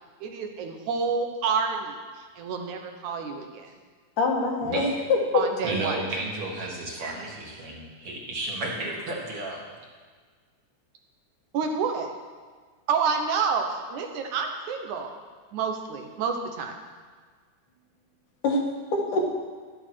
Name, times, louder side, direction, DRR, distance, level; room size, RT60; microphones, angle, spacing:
voice 1, 0.2-3.7 5.3-6.1 11.5-12.1 12.9-15.1 15.5-16.7, right 5 dB, 75° right, 4 dB, 2.4 m, -29 dB
voice 2, 4.2-5.4 18.4-18.6 18.9-19.3, left 3 dB, 80° left, 0 dB, 3.2 m, -24 dB
voice 3, 5.6-9.6, right 2 dB, 50° right, -3 dB, 2.6 m, -32 dB
12.5 x 11.0 x 4.5 m, 1.5 s
omnidirectional pair, 3.5 m